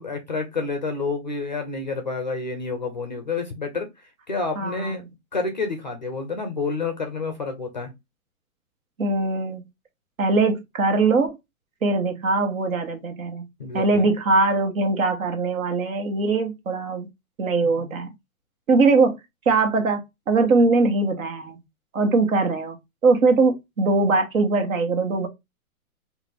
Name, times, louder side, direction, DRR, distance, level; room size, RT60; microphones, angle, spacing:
voice 1, 0.0-3.9 4.3-7.9 13.6-14.1 17.6-17.8, left 4 dB, 35° left, 0.4 m, -29 dB
voice 2, 4.6-5.0 9.0-9.6 10.2-11.4 11.8-13.4 13.7-17.1 17.4-18.1 18.7-19.2 19.4-20.0 20.3-21.6 21.9-22.8 23.0-25.3, right 3 dB, 65° right, 1.3 m, -21 dB
3.6 x 2.5 x 3.3 m
hypercardioid pair, 165°, 44 cm